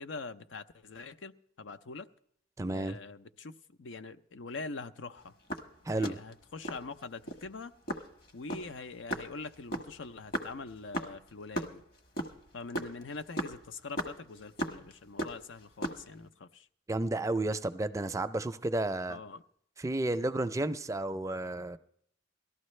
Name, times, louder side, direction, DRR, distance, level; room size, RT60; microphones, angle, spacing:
voice 1, 0.0-2.1 2.7-5.3 5.9-7.7 8.3-11.8 12.5-16.7 19.1-19.4, left 3 dB, 85° left, 11 dB, 0.7 m, -44 dB
voice 2, 2.6-3.0 5.9-6.2 16.9-19.2 19.8-21.8, right 2 dB, 15° right, 11 dB, 0.4 m, -32 dB
sound 1, 5.3-6.9 7.3-7.5 7.9-11.7 12.0-14.9 15.2-16.1, right 1 dB, 55° left, 1.4 m, -36 dB
18.5 x 13.0 x 3.2 m, 0.67 s
head